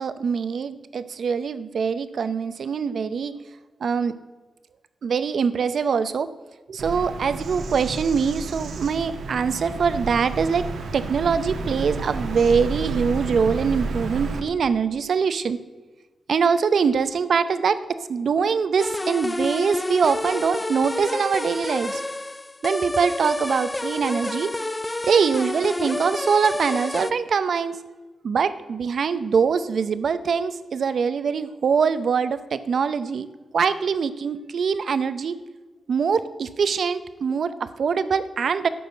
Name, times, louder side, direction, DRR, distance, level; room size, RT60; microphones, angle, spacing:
voice 1, 0.0-3.4 3.8-4.2 5.0-6.3 6.7-10.7 10.9-15.6 16.3-22.0 22.6-24.5 25.1-27.8 28.2-33.3 33.5-35.4 35.9-38.7, right 6 dB, 55° right, 13 dB, 0.6 m, -23 dB
Bird vocalization bird call bird song, 6.8-14.4, right 3 dB, 75° right, 1.3 m, -31 dB
sound 1, 18.8-27.1, left 2 dB, 15° left, 0.3 m, -29 dB
11.5 x 6.3 x 8.0 m, 1.2 s
wide cardioid pair, 150°, 0 cm